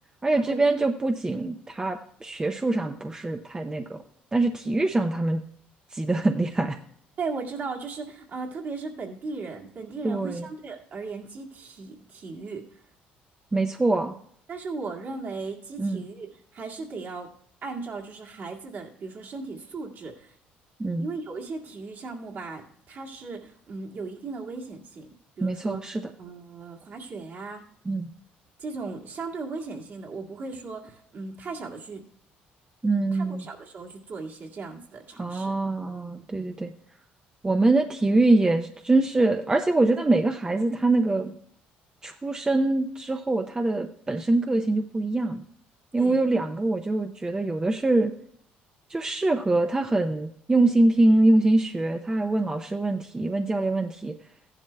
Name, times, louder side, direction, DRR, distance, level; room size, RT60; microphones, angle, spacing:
voice 1, 0.2-4.0 4.3-5.4 5.9-6.8 10.0-10.5 13.5-14.1 15.8-16.0 20.8-21.1 25.4-26.0 27.9-28.1 32.8-33.4 35.2-36.7 37.4-41.3 42.0-45.4 45.9-48.1 48.9-54.1, right 2 dB, 20° right, 5 dB, 0.6 m, -24 dB
voice 2, 7.2-12.7 14.5-17.3 17.6-20.3 21.0-25.1 25.4-25.8 26.2-27.6 28.6-32.0 33.1-35.5 46.0-46.2, right 4 dB, 55° right, -1 dB, 2.0 m, -37 dB
15.0 x 11.0 x 2.3 m, 0.66 s
supercardioid pair, 80°, 4 cm